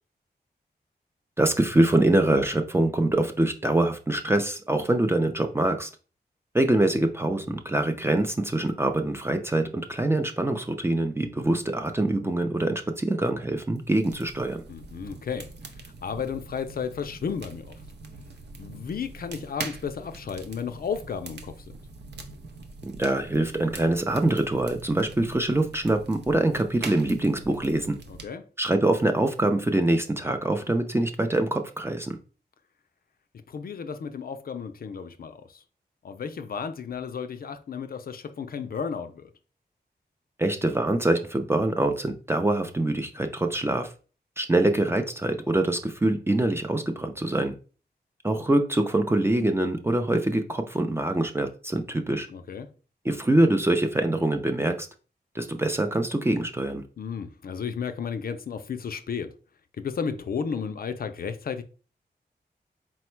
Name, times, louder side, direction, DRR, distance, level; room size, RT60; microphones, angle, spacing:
voice 1, 1.4-5.9 6.5-14.6 22.8-28.0 28.6-32.2 40.4-43.9 44.4-47.5 48.2-52.3 53.0-54.9 55.3-56.8, right 1 dB, 15° right, 0.4 m, -24 dB
sound 1, 13.7-28.3, right 3 dB, 75° right, 0.6 m, -43 dB
voice 2, 14.7-15.5 16.0-17.8 18.6-21.7 28.2-28.5 33.5-35.6 36.0-39.3 52.3-52.7 57.0-59.3 59.8-61.6, left 6 dB, 60° left, 0.4 m, -33 dB
4.3 x 2.1 x 4.4 m
wide cardioid pair, 145°, 17 cm